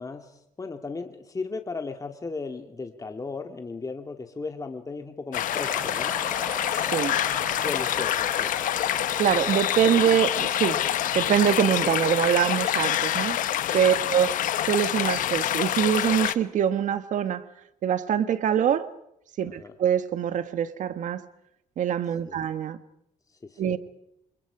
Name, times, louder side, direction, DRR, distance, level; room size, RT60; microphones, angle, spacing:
voice 1, 0.0-6.2 7.5-8.5 13.7-14.0 19.5-19.7 22.3-22.4 23.4-23.8, left 4 dB, 25° left, 1.9 m, -36 dB
sound 1, 5.3-16.3, left 12 dB, 75° left, 1.0 m, -26 dB
sound 2, 5.6-11.7, right 2 dB, 15° right, 1.3 m, -40 dB
voice 2, 6.8-7.1 9.2-10.8 11.1-13.4 13.7-14.4 14.6-17.4 17.8-18.9 19.4-21.2 21.8-22.8 23.6-23.8, right 9 dB, 65° right, 1.6 m, -24 dB
29.0 x 27.0 x 4.9 m
cardioid pair, 95°, 14 cm